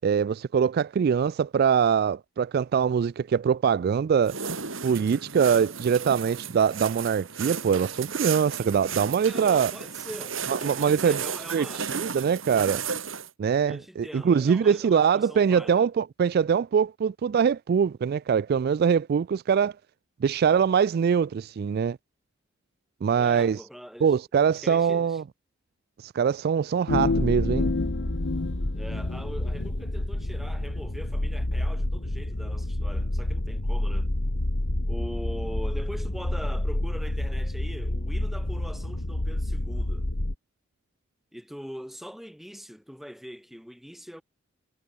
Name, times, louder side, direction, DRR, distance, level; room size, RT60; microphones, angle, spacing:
voice 1, 0.0-4.3 4.8-9.7 10.5-11.2 11.5-12.8 13.4-19.7 20.2-22.0 23.0-23.6 24.0-25.2 26.0-27.7, right 7 dB, 50° right, 0.3 m, -23 dB
sound 1, 4.2-13.3, right 6 dB, 80° right, 5.2 m, -34 dB
voice 2, 9.3-11.9 13.6-15.9 23.2-24.1 24.6-25.2 28.7-34.1 34.9-40.1 41.3-44.2, equal, ahead, 4.6 m, -42 dB
sound 2, 26.9-29.7, left 3 dB, 60° left, 0.7 m, -29 dB
sound 3, 27.1-40.3, left 1 dB, 85° left, 2.1 m, -29 dB
head